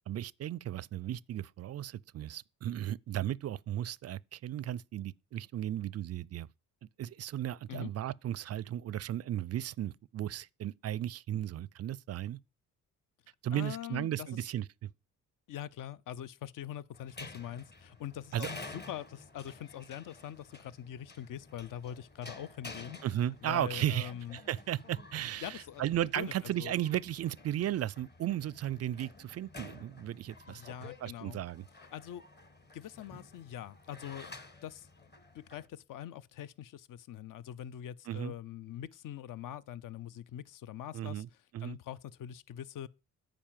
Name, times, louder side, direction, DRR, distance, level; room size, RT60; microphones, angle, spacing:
voice 1, 0.1-6.5 7.0-12.4 13.4-14.9 18.3-18.5 23.0-30.6 31.0-31.6 38.1-38.3 40.9-41.3 41.5-41.8, right 12 dB, 40° right, 0.4 m, -35 dB
voice 2, 13.5-14.3 15.5-23.0 23.4-24.4 25.4-25.8 26.2-26.7 30.5-31.4 31.9-32.2 32.7-34.3 34.6-34.9 35.3-41.2 41.6-42.9, left 10 dB, 55° left, 0.7 m, -43 dB
sound 1, 16.9-35.7, left 3 dB, 25° left, 1.4 m, -51 dB
8.7 x 5.1 x 7.5 m
supercardioid pair, 60°, 37 cm